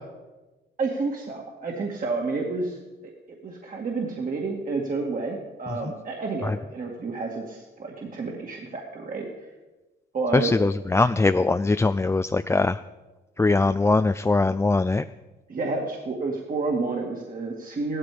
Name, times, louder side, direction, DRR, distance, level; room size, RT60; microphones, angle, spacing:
voice 1, 0.8-9.3 10.1-10.5 15.5-18.0, right 3 dB, 45° right, -1 dB, 2.2 m, -30 dB
voice 2, 10.3-12.8 13.4-15.1, left 3 dB, 15° left, 10 dB, 0.4 m, -21 dB
15.5 x 13.5 x 5.1 m, 1.2 s
cardioid pair, 90°, 20 cm